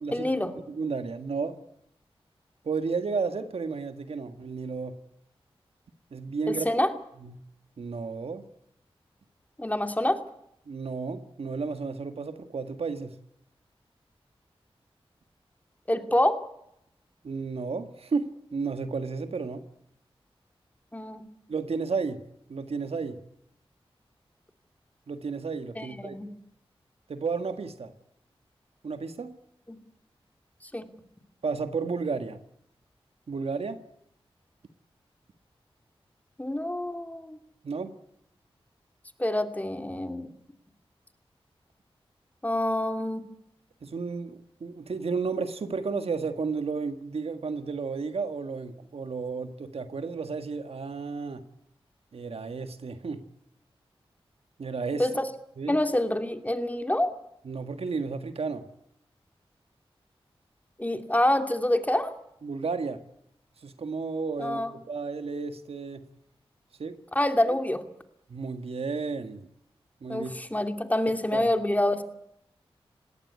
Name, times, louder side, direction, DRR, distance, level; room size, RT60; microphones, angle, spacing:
voice 1, 0.1-0.5 6.5-6.9 9.6-10.2 15.9-16.4 20.9-21.2 25.8-26.3 29.7-29.8 30.7-30.9 36.4-37.4 39.2-40.3 42.4-43.2 55.0-55.2 55.7-57.1 60.8-62.1 64.4-64.7 67.1-67.8 70.1-72.0, left 1 dB, 15° left, 7 dB, 2.7 m, -26 dB
voice 2, 0.7-1.6 2.6-5.0 6.1-6.7 7.2-7.4 7.8-8.4 10.7-13.1 17.2-19.6 21.5-22.2 22.5-23.2 25.1-26.2 27.1-27.9 28.8-29.4 31.4-32.4 33.3-33.8 37.6-37.9 43.8-51.4 52.1-53.2 54.6-55.1 55.6-55.8 57.4-58.6 62.4-63.0 63.6-66.0 66.8-67.0 68.3-69.4 70.0-70.3 71.3-71.5, right 4 dB, 75° right, 9 dB, 1.7 m, -32 dB
20.0 x 17.5 x 9.6 m, 0.76 s
cardioid pair, 50°, 10 cm